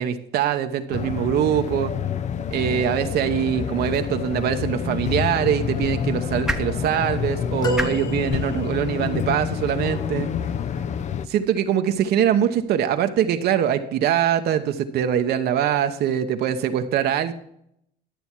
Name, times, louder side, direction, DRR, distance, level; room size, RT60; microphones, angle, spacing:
voice 1, 0.0-1.9 2.5-10.3 11.3-17.3, right 9 dB, 70° right, 7 dB, 1.0 m, -23 dB
sound 1, 0.9-11.3, left 8 dB, 45° left, 0.6 m, -28 dB
sound 2, 4.6-10.9, right 1 dB, 5° right, 0.9 m, -37 dB
sound 3, 7.6-9.0 9.8-9.9, left 2 dB, 25° left, 1.0 m, -33 dB
12.0 x 6.9 x 4.5 m, 0.73 s
cardioid pair, 110°, 17 cm